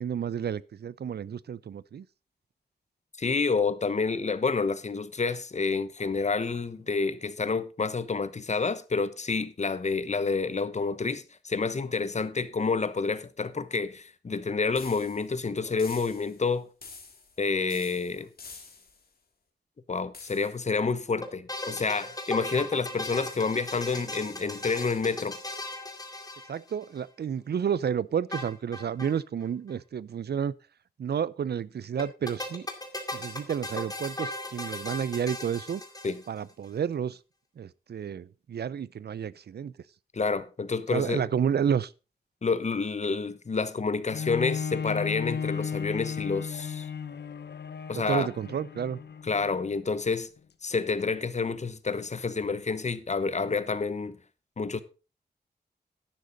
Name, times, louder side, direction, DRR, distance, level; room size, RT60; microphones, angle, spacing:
voice 1, 0.0-2.0 26.5-30.5 31.0-32.7 33.1-35.8 36.3-37.2 37.6-39.7 40.9-41.9 47.9-49.0, right 8 dB, 75° right, 0.5 m, -30 dB
voice 2, 3.2-16.7 17.4-18.3 19.9-25.4 36.0-36.2 40.1-41.3 42.4-46.9 47.9-48.3 49.2-50.3 50.6-54.2 54.6-54.8, left 4 dB, 40° left, 1.0 m, -29 dB
sound 1, 14.7-15.3 15.8-16.4 16.8-17.4 17.7-19.0 20.1-20.6, left 4 dB, 60° left, 2.6 m, -47 dB
sound 2, 21.2-27.0 28.3-29.2 29.4-29.5 29.7-29.8 32.0-36.5, left 2 dB, 20° left, 2.3 m, -37 dB
Bowed string instrument, 44.1-49.7 50.4-50.5, left 6 dB, 80° left, 1.0 m, -35 dB
11.5 x 10.5 x 4.0 m
wide cardioid pair, 105°, 17 cm